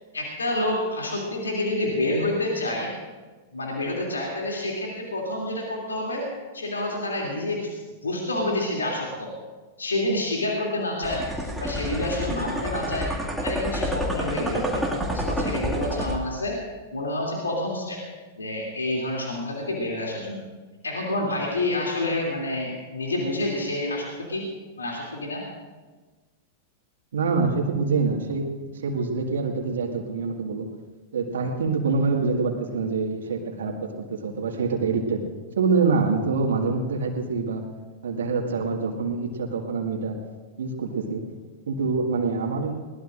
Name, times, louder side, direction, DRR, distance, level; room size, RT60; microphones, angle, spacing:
voice 1, 0.1-2.9 3.5-6.3 6.5-9.3 9.8-13.1 13.4-16.6 16.9-18.0 18.4-20.4 20.8-24.5 24.8-25.4, left 1 dB, 80° left, -2 dB, 2.8 m, -28 dB
sound 1, 11.0-16.2, equal, ahead, 2.2 m, -29 dB
voice 2, 27.1-28.5 28.7-30.7 31.1-35.2 35.6-37.6 38.0-40.2 40.6-41.2 41.7-42.8, right 4 dB, 65° right, 1 dB, 1.9 m, -25 dB
21.5 x 19.0 x 2.6 m, 1.3 s
figure-of-eight pair, 95°, 0 cm